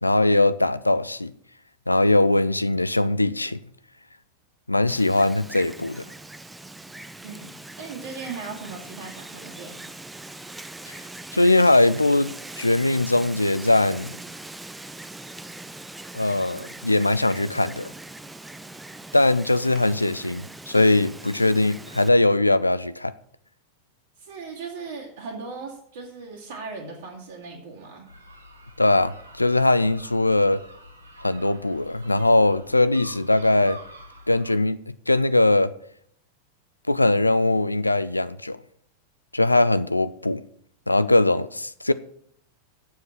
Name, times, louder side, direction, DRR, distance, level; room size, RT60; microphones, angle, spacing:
voice 1, 0.0-1.3 1.9-3.6 4.7-6.0 10.9-11.0 11.3-14.1 16.1-17.9 19.1-23.1 28.8-30.6 31.2-33.8 34.3-34.8 35.1-35.7 36.9-38.6 39.3-40.4 40.9-41.9, left 2 dB, 85° left, 0.3 m, -21 dB
Wind, 4.9-22.1, right 2 dB, 5° right, 0.6 m, -41 dB
voice 2, 7.2-9.9 24.2-28.1, right 4 dB, 60° right, 2.5 m, -38 dB
sound 1, 28.1-34.5, equal, 80° right, 1.7 m, -47 dB
7.3 x 7.2 x 7.3 m
figure-of-eight pair, 90°, 0 cm